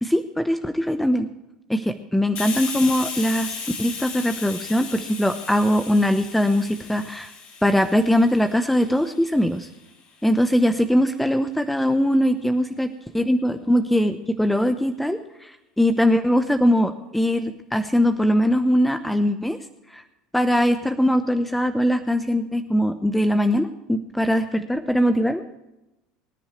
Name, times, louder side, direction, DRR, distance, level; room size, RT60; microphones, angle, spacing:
voice 1, 0.0-1.3 1.7-7.3 7.6-9.7 10.2-12.9 13.1-19.6 19.9-20.0 20.3-25.4, equal, 5° left, 9 dB, 0.9 m, -21 dB
Hiss, 2.4-9.8, left 5 dB, 60° left, 5.1 m, -35 dB
23.5 x 10.5 x 3.3 m, 0.94 s
hypercardioid pair, 80°, 3 cm